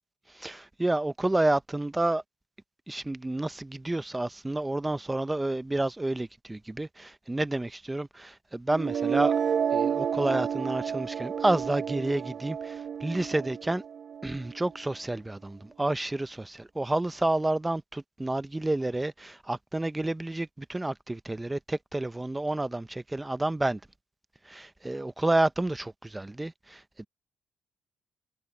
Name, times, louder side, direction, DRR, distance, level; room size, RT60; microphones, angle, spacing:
voice 1, 0.3-2.2 2.9-9.3 9.7-13.8 14.2-23.8 24.5-27.1, right 2 dB, 15° right, 0.7 m, -30 dB
sound 1, 8.7-14.7, right 7 dB, 55° right, 1.1 m, -30 dB
cardioid pair, 90°, 0 cm